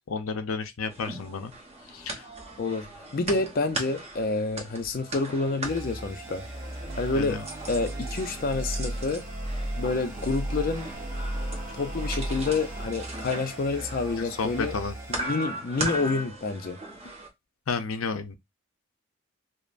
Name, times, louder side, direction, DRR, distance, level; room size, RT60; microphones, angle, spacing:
voice 1, 0.1-1.5 1.9-2.3 7.1-7.4 14.2-14.9 17.7-18.4, left 4 dB, 90° left, 0.6 m, -31 dB
sound 1, 0.9-17.3, right 1 dB, 30° right, 0.9 m, -39 dB
voice 2, 2.6-6.4 7.0-7.4 7.7-9.2 9.8-10.9 11.7-14.7 15.1-16.8, left 3 dB, 45° left, 0.5 m, -28 dB
sound 2, 5.6-15.2, right 1 dB, 15° right, 1.2 m, -35 dB
5.1 x 2.0 x 2.5 m
head